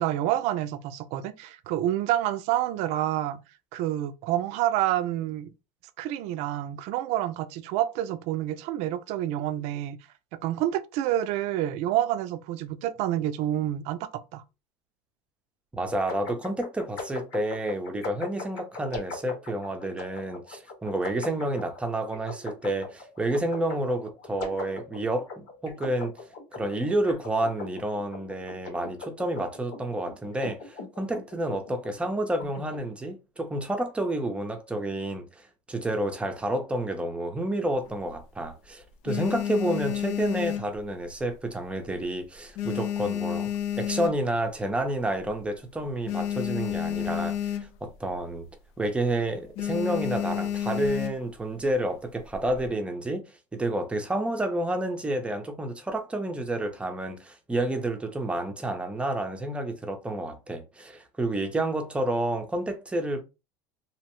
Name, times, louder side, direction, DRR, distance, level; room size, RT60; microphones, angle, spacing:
voice 1, 0.0-3.4 3.7-5.5 6.0-10.0 10.4-14.4, right 13 dB, 60° right, 0.4 m, -28 dB
voice 2, 15.7-26.2 26.5-35.4 35.7-48.5 48.8-53.2 53.5-63.2, right 1 dB, 10° right, 0.5 m, -30 dB
sound 1, 16.1-32.8, left 3 dB, 85° left, 1.3 m, -40 dB
sound 2, 37.8-38.5 38.9-41.4 41.7-42.0 42.3-44.6 45.0-45.1 45.3-45.4 45.8-48.0 48.3-48.5 48.8-49.1 49.6-51.4 52.1-52.7, left 10 dB, 65° left, 0.4 m, -31 dB
2.7 x 2.0 x 3.0 m
supercardioid pair, 130°, 13 cm